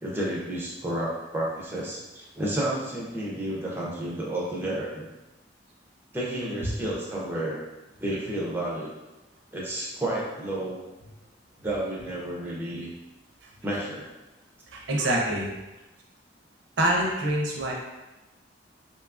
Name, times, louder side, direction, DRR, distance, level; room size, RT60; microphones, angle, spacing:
voice 1, 0.0-5.1 6.1-7.6 8.0-8.9 9.5-10.8 11.6-12.9 13.6-14.1, right 1 dB, 10° right, -5 dB, 0.4 m, -31 dB
voice 2, 14.7-15.5 16.8-17.7, right 1 dB, 85° right, -1 dB, 0.5 m, -25 dB
2.7 x 2.3 x 2.3 m, 1.0 s
head